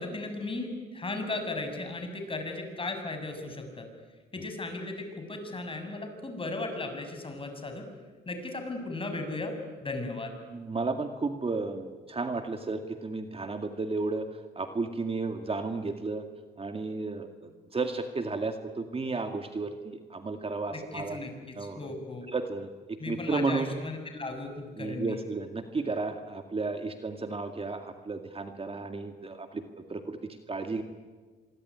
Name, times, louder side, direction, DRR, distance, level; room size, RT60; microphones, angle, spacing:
voice 1, 0.0-3.9 4.3-7.9 8.3-9.5 9.8-10.4 20.7-22.3 23.0-25.2, left 2 dB, 25° left, 6 dB, 6.9 m, -36 dB
voice 2, 10.5-14.3 14.6-16.2 16.6-21.2 21.6-21.8 22.3-23.7 24.8-30.8, right 3 dB, 30° right, 6 dB, 2.2 m, -33 dB
26.0 x 23.0 x 9.8 m, 1.4 s
cardioid pair, 90°, 20 cm